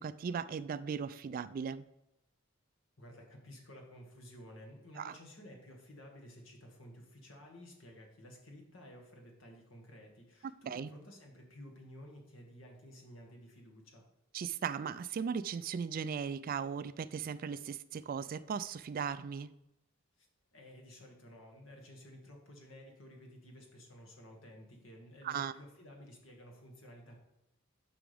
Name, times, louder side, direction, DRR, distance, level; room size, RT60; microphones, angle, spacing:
voice 1, 0.0-1.8 5.0-5.1 10.7-10.9 14.3-19.5 25.2-25.5, right 6 dB, 45° right, 0.3 m, -37 dB
voice 2, 3.0-14.0 20.2-20.3 20.5-27.2, equal, 70° left, 2.0 m, -53 dB
10.5 x 6.1 x 3.5 m
head